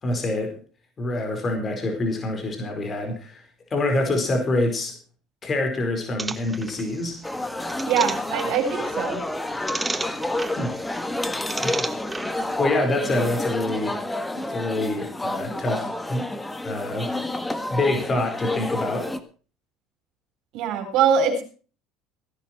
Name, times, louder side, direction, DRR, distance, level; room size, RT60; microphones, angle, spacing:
voice 1, 0.0-0.6 1.0-3.4 3.7-5.0 5.4-7.2 10.6-10.7 11.6-14.0 14.3-16.3 16.6-17.1 17.7-19.1, left 2 dB, 35° left, 4 dB, 4.6 m, -26 dB
sound 1, 6.2-12.6, right 2 dB, 15° right, 1.2 m, -35 dB
sound 2, 7.2-19.2, left 2 dB, 10° left, 1.6 m, -29 dB
voice 2, 7.9-9.2 20.5-21.4, right 7 dB, 65° right, 4 dB, 4.2 m, -22 dB
17.0 x 11.0 x 4.5 m, 0.37 s
hypercardioid pair, 75°, 0 cm